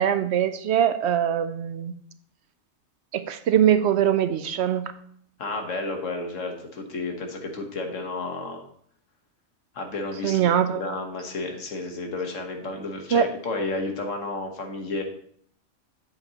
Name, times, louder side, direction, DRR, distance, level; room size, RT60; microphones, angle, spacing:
voice 1, 0.0-1.9 3.1-4.9 10.2-10.8 13.1-13.3, right 9 dB, 70° right, 11 dB, 0.8 m, -22 dB
voice 2, 5.4-8.6 9.7-15.0, left 2 dB, 90° left, 3 dB, 1.6 m, -32 dB
7.9 x 7.2 x 2.9 m, 0.64 s
omnidirectional pair, 1.3 m